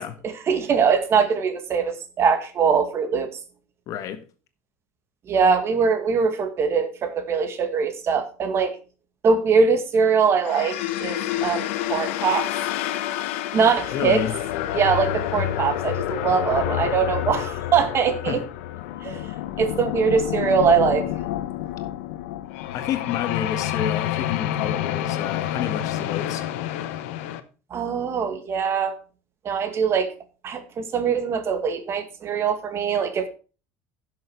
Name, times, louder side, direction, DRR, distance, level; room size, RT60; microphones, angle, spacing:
voice 1, 0.2-3.3 5.3-8.8 9.2-12.5 13.5-14.2 14.7-18.4 19.0-19.2 19.6-21.0 27.7-29.0 29.4-30.1 30.4-33.3, right 6 dB, 40° right, 1.9 m, -22 dB
voice 2, 3.9-4.2 13.9-14.3 18.3-18.4 22.7-26.4, left 9 dB, 55° left, 1.6 m, -29 dB
sound 1, 10.4-27.4, left 13 dB, 85° left, 1.0 m, -28 dB
11.0 x 6.6 x 4.7 m
supercardioid pair, 115°, 7 cm